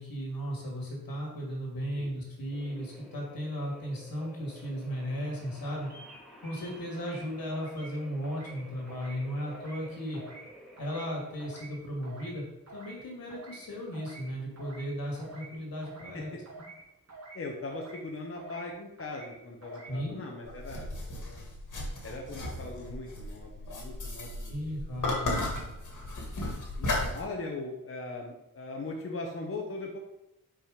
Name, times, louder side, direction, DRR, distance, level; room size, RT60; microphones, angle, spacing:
voice 1, 0.0-5.9 6.4-10.2 10.8-12.4 12.7-16.3 19.9-20.5 24.5-25.4, equal, 80° left, -1 dB, 2.4 m, -36 dB
sound 1, 2.5-17.1, equal, ahead, 1.2 m, -53 dB
sound 2, 5.9-6.2 6.4-7.2 7.5-8.0 8.2-8.6 8.9-9.2 9.5-9.9 10.1-10.5 10.8-11.1 11.4-11.7 12.0-12.4 12.7-13.0 13.3-13.6 13.9-14.3 14.6-14.9 15.2-15.5 15.8-16.2 16.4-16.8 17.1-17.4 17.7-18.1 18.3-18.7 19.0-19.3 19.6-20.0, right 3 dB, 50° right, 2.2 m, -48 dB
voice 2, 17.3-21.5 22.0-24.8 26.8-30.0, left 2 dB, 40° left, 0 dB, 0.9 m, -40 dB
sound 3, 20.5-27.2, left 2 dB, 60° left, 1.9 m, -35 dB
5.7 x 4.9 x 5.1 m, 0.88 s
wide cardioid pair, 160°, 35 cm